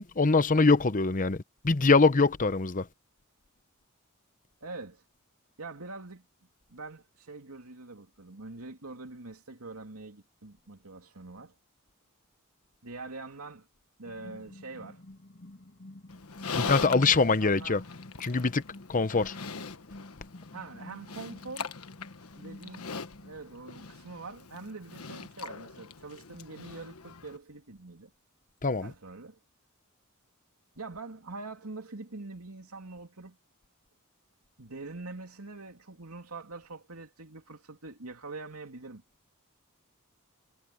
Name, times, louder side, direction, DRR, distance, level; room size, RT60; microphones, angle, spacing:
voice 1, 0.0-2.9 16.5-17.8 18.2-18.6 18.9-19.4 28.6-28.9, left 4 dB, 40° left, 0.9 m, -23 dB
voice 2, 4.6-5.0 5.6-6.3 6.7-11.5 12.8-13.7 14.0-15.0 16.4-17.8 20.5-21.8 22.3-22.9 23.2-28.1 28.8-29.4 30.8-33.4 34.6-39.0, right 3 dB, 85° right, 2.9 m, -44 dB
sound 1, 14.0-23.4, left 1 dB, 55° left, 2.9 m, -50 dB
Livestock farm animals working animals, 16.1-27.4, left 5 dB, 85° left, 1.3 m, -41 dB
head